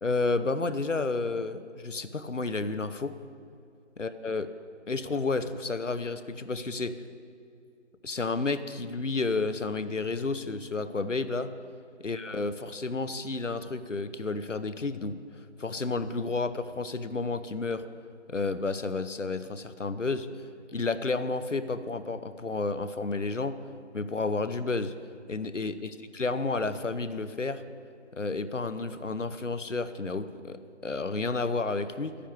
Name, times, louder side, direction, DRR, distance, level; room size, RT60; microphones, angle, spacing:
voice 1, 0.0-3.1 4.0-4.5 4.9-6.9 8.0-11.5 12.0-15.2 15.6-17.8 18.3-20.3 20.7-23.6 23.9-24.9 25.3-27.6 28.1-32.2, left 3 dB, 80° left, 12 dB, 0.8 m, -31 dB
12.0 x 10.0 x 4.7 m, 2.4 s
figure-of-eight pair, 175°, 36 cm